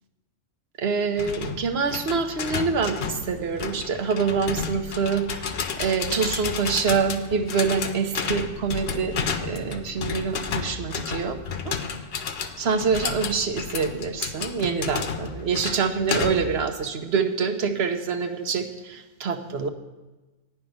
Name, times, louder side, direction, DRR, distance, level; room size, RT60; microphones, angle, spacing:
voice 1, 0.8-9.2 9.4-11.4 11.6-11.7 12.6-19.7, right 5 dB, 60° right, 7 dB, 1.0 m, -26 dB
sound 1, 1.2-16.6, left 6 dB, 60° left, 0.8 m, -32 dB
9.8 x 5.6 x 7.7 m, 1.1 s
omnidirectional pair, 1.3 m